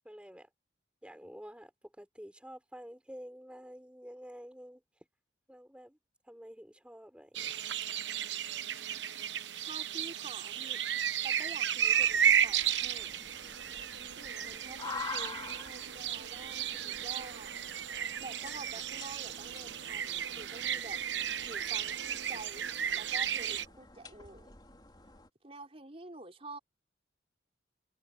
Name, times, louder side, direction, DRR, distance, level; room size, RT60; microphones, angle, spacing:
voice 1, 0.0-0.5 1.0-5.1 5.5-6.0 6.2-7.5, equal, 5° right, 4.8 m, -49 dB
sound 1, 7.3-23.6, right 9 dB, 75° right, 1.0 m, -33 dB
voice 2, 9.6-10.8 11.2-13.1 14.2-17.5 18.2-21.0 21.4-22.7 22.9-24.6 25.4-26.6, right 2 dB, 35° right, 4.4 m, -48 dB
sound 2, 12.0-25.3, left 4 dB, 25° left, 3.9 m, -48 dB
head